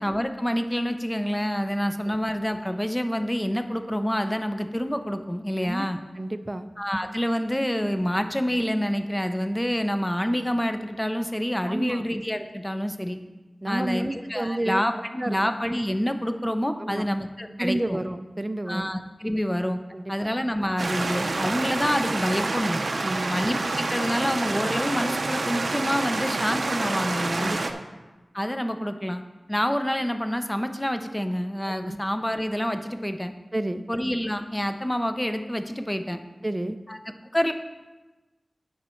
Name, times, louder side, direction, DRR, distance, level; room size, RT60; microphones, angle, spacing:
voice 1, 0.0-6.0 6.8-13.2 13.7-18.0 18.7-19.8 20.1-22.8 23.3-27.6 28.3-29.2 29.5-33.3 33.9-36.2 36.9-37.0 37.3-37.5, equal, 15° left, 7 dB, 0.7 m, -27 dB
voice 2, 6.2-6.7 11.6-12.0 13.6-14.8 15.2-15.4 16.8-17.1 17.6-18.9 19.9-20.3 23.0-23.4 27.4-27.9 31.8-32.0 33.5-33.8 36.4-36.8, right 1 dB, 25° right, 10 dB, 0.5 m, -30 dB
sound 1, 20.8-27.7, right 3 dB, 75° right, 0.6 m, -28 dB
9.2 x 6.3 x 4.5 m, 1.2 s
wide cardioid pair, 50°, 0 cm